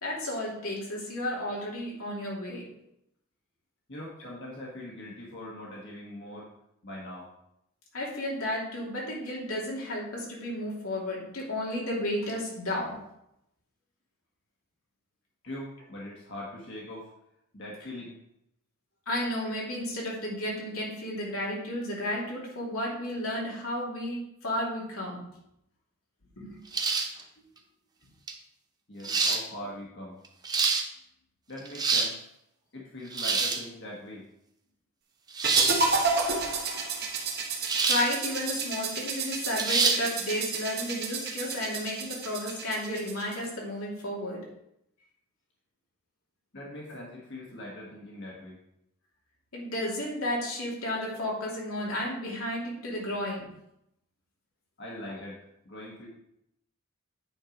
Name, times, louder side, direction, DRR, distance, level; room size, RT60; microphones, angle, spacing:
voice 1, 0.0-2.6 7.9-13.0 19.1-25.2 26.4-26.6 37.8-44.4 49.5-53.5, left 1 dB, 90° left, -4 dB, 2.8 m, -33 dB
voice 2, 3.9-6.5 6.8-7.3 15.4-17.1 17.5-18.1 28.9-30.2 31.5-32.2 32.7-34.2 46.5-48.6 54.8-56.1, left 1 dB, 55° left, -4 dB, 1.6 m, -41 dB
sound 1, 26.7-27.2 28.3-28.4 29.0-29.4 30.2-30.8 31.6-32.1 33.1-33.6 35.3-35.8 37.7-38.1 38.5-38.6 39.6-40.0, right 4 dB, 20° right, 0.7 m, -26 dB
sound 2, 35.4-43.5, right 4 dB, 50° right, 1.2 m, -31 dB
8.9 x 4.7 x 5.1 m, 0.79 s
head